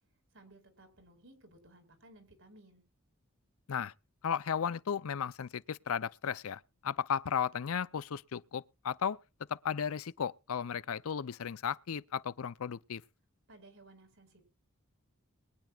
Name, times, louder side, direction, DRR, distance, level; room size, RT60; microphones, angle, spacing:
voice 1, 0.3-2.8 13.5-14.4, right 2 dB, 65° right, 4.9 m, -58 dB
voice 2, 4.2-9.2 9.5-13.0, left 7 dB, 80° left, 0.5 m, -35 dB
22.5 x 10.5 x 2.4 m
head